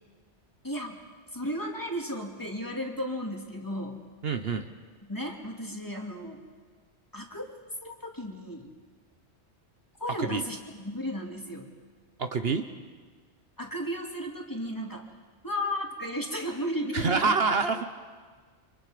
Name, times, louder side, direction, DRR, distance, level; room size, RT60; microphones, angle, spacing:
voice 1, 0.6-1.0 1.3-4.0 5.1-6.4 7.1-7.4 7.8-8.7 10.0-11.7 13.6-15.1 15.4-17.3, equal, 15° left, 1 dB, 2.5 m, -34 dB
voice 2, 4.2-4.7 10.2-10.4 12.2-12.6 16.9-17.9, right 4 dB, 60° right, 7 dB, 1.2 m, -26 dB
30.0 x 26.0 x 5.1 m, 1.5 s
omnidirectional pair, 1.2 m